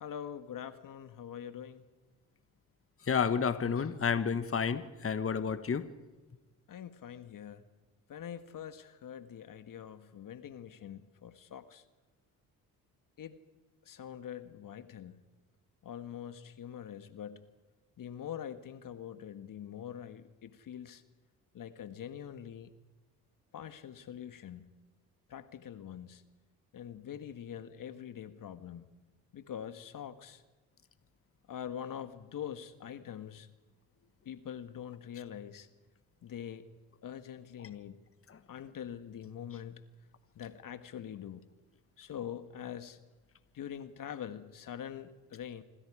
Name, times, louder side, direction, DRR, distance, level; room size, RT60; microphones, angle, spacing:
voice 1, 0.0-1.8 6.7-7.6 8.1-11.8 13.2-13.4 13.8-15.2 15.8-17.5 18.0-21.0 21.5-22.7 23.5-24.7 25.3-26.2 26.7-28.8 29.3-30.4 31.5-33.5 34.2-35.7 36.2-36.7 37.0-38.0 38.5-39.8 40.3-41.4 42.0-43.0 43.5-45.6, left 9 dB, 55° left, 10 dB, 1.6 m, -44 dB
voice 2, 3.1-5.9 38.3-38.4, left 6 dB, 35° left, 11 dB, 1.6 m, -30 dB
27.0 x 25.0 x 5.0 m, 1.2 s
hypercardioid pair, 55°, 40 cm